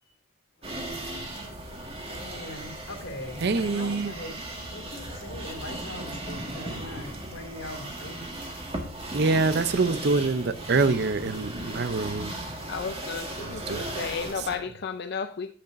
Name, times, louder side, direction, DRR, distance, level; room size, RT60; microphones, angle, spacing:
sound 1, 0.6-14.6, right 1 dB, 30° right, 1.8 m, -37 dB
voice 1, 1.8-8.6 9.3-9.8 13.5-14.5, left 1 dB, 80° left, 2.6 m, -42 dB
voice 2, 3.4-4.1 9.1-12.3 13.4-14.1, right 3 dB, 60° right, 0.7 m, -25 dB
voice 3, 12.7-15.5, left 6 dB, 60° left, 0.6 m, -33 dB
10.0 x 8.0 x 2.6 m
head